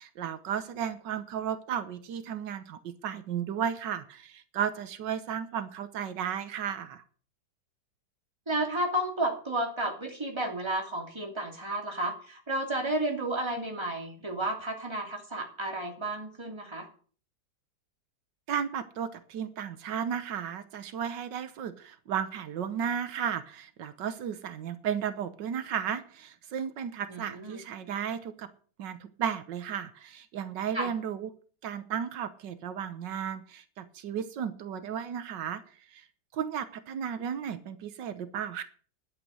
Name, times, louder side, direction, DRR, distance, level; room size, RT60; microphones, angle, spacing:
voice 1, 0.0-7.0 18.5-28.5 28.8-31.3 31.6-36.1 36.3-38.6, right 8 dB, 80° right, 11 dB, 1.6 m, -34 dB
voice 2, 8.5-16.9 27.1-27.6 30.7-30.9, right 1 dB, 15° right, 2 dB, 3.0 m, -32 dB
11.5 x 8.2 x 7.6 m, 0.43 s
omnidirectional pair, 1.9 m